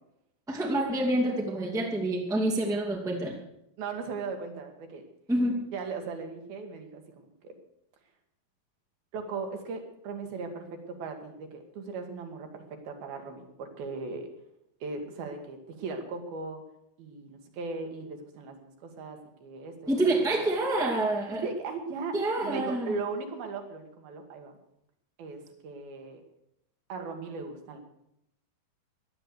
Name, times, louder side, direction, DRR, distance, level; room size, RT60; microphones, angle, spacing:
voice 1, 0.5-3.4 5.3-5.6 19.9-21.4 22.1-23.0, right 1 dB, ahead, 0 dB, 1.8 m, -27 dB
voice 2, 3.8-5.1 5.7-7.5 9.1-14.3 14.8-16.6 17.0-20.1 21.4-22.2 22.4-24.6 25.2-26.2 26.9-27.8, right 4 dB, 75° right, 4 dB, 3.7 m, -38 dB
15.5 x 11.0 x 6.9 m, 0.78 s
omnidirectional pair, 4.4 m